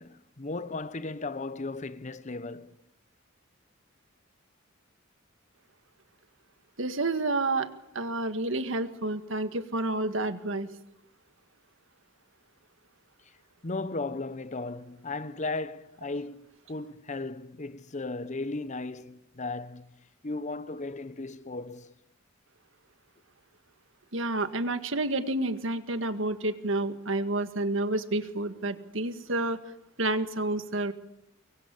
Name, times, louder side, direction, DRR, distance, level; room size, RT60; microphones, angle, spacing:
voice 1, 0.0-2.7 13.6-19.9 20.2-21.9, left 3 dB, 35° left, 0.9 m, -36 dB
voice 2, 6.8-10.7 24.1-29.6 30.0-30.9, right 2 dB, 70° right, 1.9 m, -29 dB
25.0 x 23.0 x 8.5 m
head